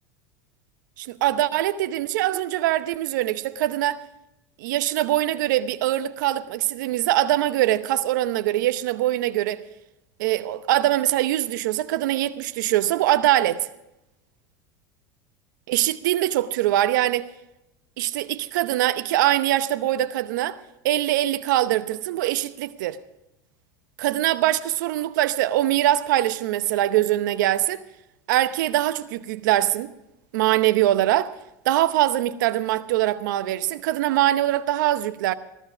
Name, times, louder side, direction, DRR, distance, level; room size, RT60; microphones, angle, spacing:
voice 1, 1.0-4.0 4.6-9.6 10.2-13.7 15.7-17.3 18.0-20.6 20.8-23.0 24.0-27.8 28.3-29.9 30.3-31.3 31.6-35.3, right 14 dB, 75° right, 0.8 m, -23 dB
14.5 x 13.5 x 5.0 m
hypercardioid pair, 95°, 10 cm